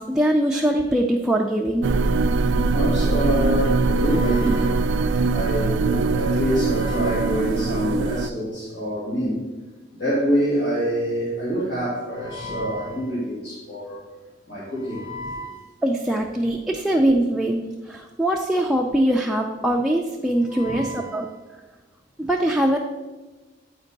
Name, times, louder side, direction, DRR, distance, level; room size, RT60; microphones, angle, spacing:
voice 1, 0.0-1.9 15.8-21.3 22.2-22.8, right 1 dB, 5° right, 0 dB, 0.4 m, -22 dB
sound 1, 1.8-8.3, right 3 dB, 80° right, 0.3 m, -22 dB
voice 2, 2.7-9.4 10.0-14.0 14.5-15.6 20.5-21.2, equal, 65° left, -11 dB, 2.6 m, -26 dB
9.3 x 4.4 x 4.0 m, 1.2 s
head